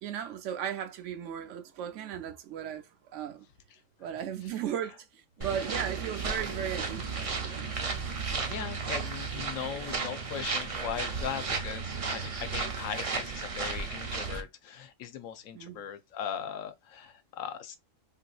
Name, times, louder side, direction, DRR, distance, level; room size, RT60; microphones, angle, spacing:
voice 1, 0.0-2.9 3.1-3.5 4.0-7.7 15.5-15.9, right 9 dB, 70° right, 0.9 m, -36 dB
sound 1, 5.4-14.4, right 4 dB, 45° right, 0.4 m, -34 dB
voice 2, 8.4-17.8, left 9 dB, 85° left, 1.0 m, -39 dB
3.7 x 2.6 x 2.3 m
omnidirectional pair, 1.4 m